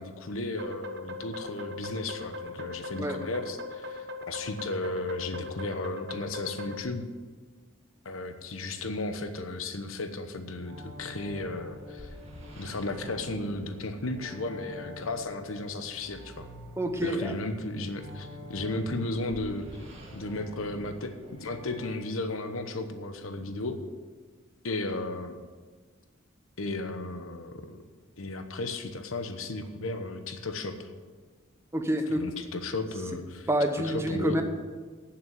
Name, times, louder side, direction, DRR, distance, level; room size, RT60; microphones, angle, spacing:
voice 1, 0.0-7.0 8.0-12.2 12.6-16.5 17.0-19.7 20.1-23.8 24.6-25.4 26.6-27.8 28.2-30.9 32.1-33.5 33.8-34.4, left 2 dB, 85° left, 8 dB, 1.0 m, -34 dB
sound 1, 0.6-6.8, left 3 dB, 55° right, 0.9 m, -40 dB
sound 2, 10.6-21.9, left 1 dB, 35° right, 2.4 m, -46 dB
voice 2, 16.8-17.3 31.7-32.2 33.5-34.4, right 1 dB, 15° right, 5 dB, 1.0 m, -27 dB
9.2 x 7.3 x 8.8 m, 1.4 s
head